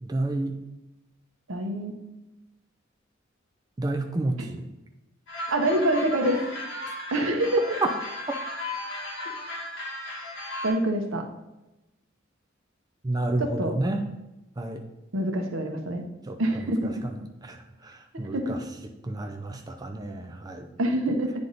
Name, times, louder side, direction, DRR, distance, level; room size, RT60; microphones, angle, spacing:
voice 1, 0.0-0.6 3.8-4.7 13.0-14.1 14.6-14.8 16.3-17.2 17.5-17.6 17.8-18.6 19.0-20.7, right 2 dB, 20° right, 4 dB, 0.5 m, -31 dB
voice 2, 1.5-1.9 5.5-6.4 7.1-7.6 10.6-11.2 13.4-13.7 15.1-16.0 16.4-17.0 18.3-18.6 20.8-21.3, right 1 dB, 80° right, 3 dB, 0.9 m, -25 dB
sound 1, 5.3-10.7, left 1 dB, 65° left, 1.7 m, -35 dB
9.3 x 3.5 x 4.0 m, 0.97 s
head